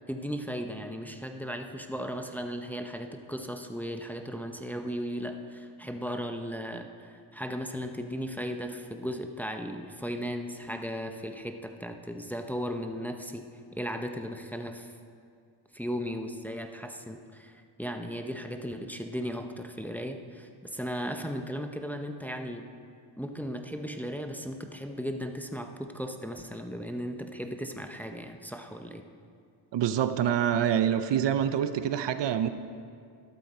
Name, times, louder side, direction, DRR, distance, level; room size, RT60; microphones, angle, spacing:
voice 1, 0.1-14.9 15.7-22.7 23.2-29.0, equal, 5° left, 5 dB, 0.7 m, -36 dB
voice 2, 29.7-32.5, right 9 dB, 60° right, 11 dB, 0.7 m, -26 dB
13.0 x 12.5 x 4.2 m, 2.3 s
cardioid pair, 95°, 48 cm